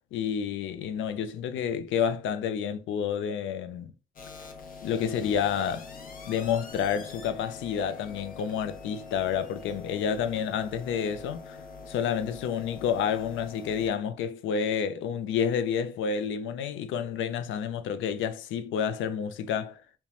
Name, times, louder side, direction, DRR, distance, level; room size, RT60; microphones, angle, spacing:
voice 1, 0.1-3.9 4.8-5.9 6.3-11.6 11.9-19.8, left 7 dB, 75° left, 0.4 m, -29 dB
sound 1, 4.2-13.9, left 4 dB, 45° left, 0.7 m, -44 dB
2.9 x 2.1 x 2.3 m
cardioid pair, 90°, 20 cm